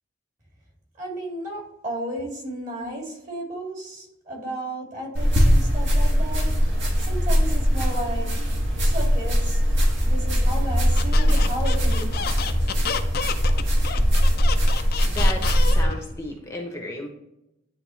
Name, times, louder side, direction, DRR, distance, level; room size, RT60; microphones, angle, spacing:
voice 1, 1.0-6.6 7.0-8.3 8.8-9.6 10.0-12.4, right 1 dB, 40° right, -2 dB, 2.5 m, -33 dB
sound 1, 5.1-15.8, equal, 65° right, 1.8 m, -21 dB
Squeak, 10.9-16.0, left 7 dB, 50° left, 0.5 m, -30 dB
voice 2, 15.0-17.1, left 1 dB, 15° left, 1 dB, 0.9 m, -34 dB
10.0 x 3.7 x 3.1 m, 0.85 s
head